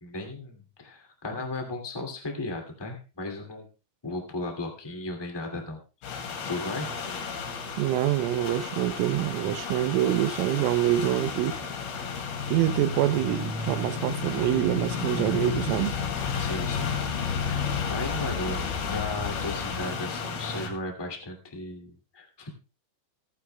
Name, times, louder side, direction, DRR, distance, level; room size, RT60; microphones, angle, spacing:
voice 1, 0.0-3.7 4.0-5.8 6.5-6.9 12.6-12.7 16.4-17.0 17.5-18.6 18.9-22.5, left 2 dB, 35° left, 0.3 m, -35 dB
sound 1, 6.0-20.7, left 5 dB, 55° left, 3.9 m, -32 dB
voice 2, 7.8-11.6 12.5-16.0, right 13 dB, 85° right, 3.3 m, -25 dB
sound 2, 15.1-19.9, left 8 dB, 70° left, 3.2 m, -37 dB
27.5 x 9.7 x 2.3 m
omnidirectional pair, 5.6 m